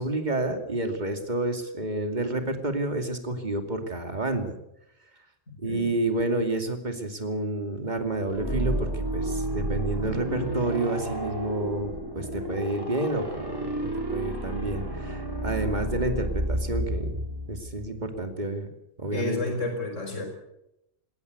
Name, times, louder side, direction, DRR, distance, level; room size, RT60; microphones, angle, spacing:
voice 1, 0.0-4.5 5.6-18.7 19.0-19.4, right 2 dB, 35° right, 6 dB, 2.7 m, -29 dB
sound 1, 8.3-18.0, right 1 dB, 20° right, 4.7 m, -31 dB
voice 2, 19.1-20.2, left 2 dB, 90° left, 4 dB, 4.9 m, -31 dB
20.5 x 18.0 x 8.2 m, 0.84 s
omnidirectional pair, 1.2 m